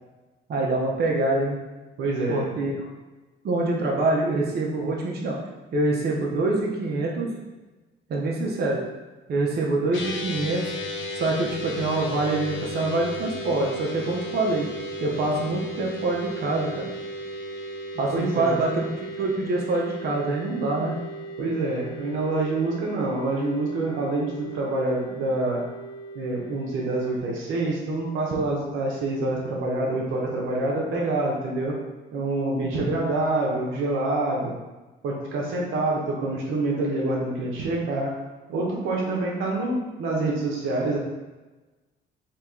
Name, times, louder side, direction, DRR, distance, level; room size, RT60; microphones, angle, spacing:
voice 1, 0.5-1.6 2.3-2.7 3.4-5.4 5.7-7.3 8.1-8.8 9.3-10.6 11.1-14.7 15.0-16.9 17.9-18.9 19.2-21.0 32.6-32.9, right 2 dB, 55° right, -2 dB, 0.7 m, -25 dB
voice 2, 2.0-2.5 18.1-18.6 21.4-25.6 26.1-31.7 32.1-34.5 35.0-38.1 38.5-41.0, right 2 dB, 85° right, -2 dB, 0.8 m, -26 dB
sound 1, 9.9-27.2, equal, 75° left, 0.5 m, -36 dB
2.9 x 2.9 x 3.5 m, 1.2 s
cardioid pair, 90°, 20 cm